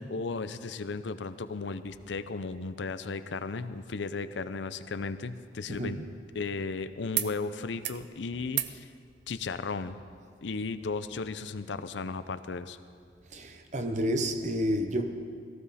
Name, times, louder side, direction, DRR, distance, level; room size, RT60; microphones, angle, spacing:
voice 1, 0.0-6.0 6.3-8.9 9.3-10.0 10.4-12.8, left 4 dB, 80° left, 0.6 m, -35 dB
sound 1, 5.0-6.7 7.1-7.3 7.6-8.1 8.5-8.8 10.1-10.2, right 13 dB, 70° right, 0.5 m, -36 dB
voice 2, 5.7-6.0 13.3-15.1, equal, 40° right, 0.9 m, -30 dB
17.5 x 15.0 x 4.2 m
head